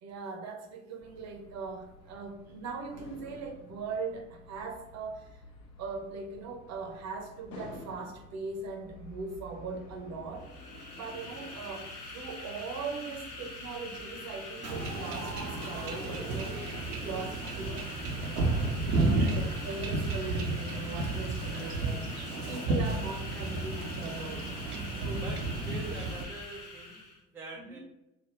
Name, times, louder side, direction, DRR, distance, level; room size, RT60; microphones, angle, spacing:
voice 1, 0.0-5.4 5.8-10.5 10.9-17.9 18.7-24.4 25.0-25.2 27.6-27.8, right 4 dB, 40° right, 0.7 m, -40 dB
sound 1, 1.0-16.3, left 2 dB, 40° left, 0.7 m, -51 dB
sound 2, 10.3-27.2, left 2 dB, 90° left, 0.7 m, -44 dB
Wind / Ocean / Boat Water vehicle, 14.6-26.2, right 2 dB, 80° right, 0.7 m, -32 dB
voice 2, 25.2-27.8, right 2 dB, 5° right, 0.3 m, -44 dB
3.3 x 2.2 x 4.3 m
figure-of-eight pair, 70°, 44 cm